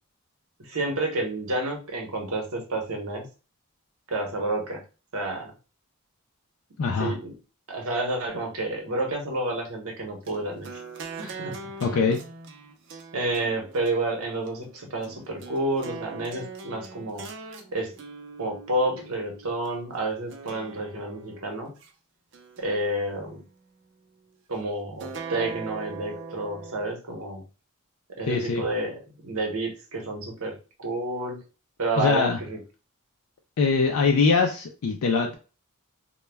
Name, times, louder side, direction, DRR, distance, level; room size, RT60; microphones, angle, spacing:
voice 1, 0.6-3.3 4.1-4.8 5.1-5.5 7.0-7.3 7.7-10.8 11.2-11.5 13.1-17.2 17.7-17.9 18.4-21.7 22.6-23.4 24.5-27.4 28.2-28.9 29.2-31.4 31.8-32.6, right 2 dB, 75° right, 1 dB, 0.8 m, -30 dB
voice 2, 6.8-7.1 11.8-12.2 28.3-28.6 32.0-32.4 33.6-35.3, left 4 dB, 75° left, 2 dB, 0.4 m, -22 dB
sound 1, 10.3-19.7 20.3-21.9 22.3-23.5 25.0-26.9, right 4 dB, 55° right, 0.5 m, -41 dB
2.2 x 2.0 x 3.3 m, 0.34 s
head